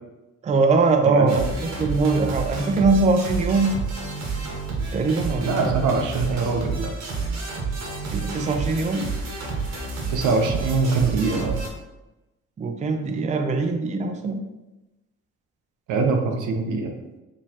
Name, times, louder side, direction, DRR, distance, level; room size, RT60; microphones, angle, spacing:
voice 1, 0.4-3.7 4.9-5.8 8.1-9.1 12.6-14.4, right 3 dB, 25° right, 5 dB, 0.4 m, -22 dB
sound 1, 1.3-11.7, right 3 dB, 65° right, 1.1 m, -30 dB
voice 2, 5.4-6.9 10.1-11.6 15.9-16.9, right 4 dB, 80° right, 3 dB, 0.7 m, -23 dB
4.5 x 3.1 x 2.8 m, 1.0 s
cardioid pair, 90°, 30 cm